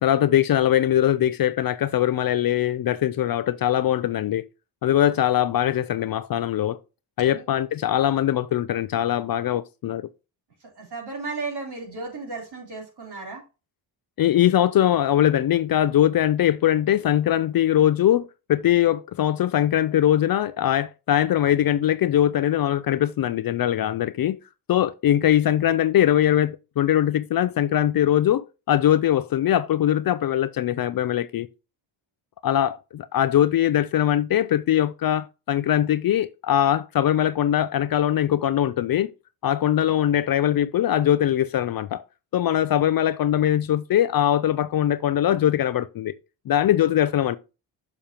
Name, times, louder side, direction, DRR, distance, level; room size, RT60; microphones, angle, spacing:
voice 1, 0.0-4.4 4.8-6.8 7.2-10.1 14.2-24.4 24.7-31.5 32.4-39.1 39.4-42.0 42.3-46.1 46.5-47.4, left 11 dB, 45° left, 0.5 m, -21 dB
voice 2, 10.8-13.4, right 3 dB, 50° right, 3.6 m, -34 dB
7.0 x 6.8 x 2.9 m
cardioid pair, 75°, 49 cm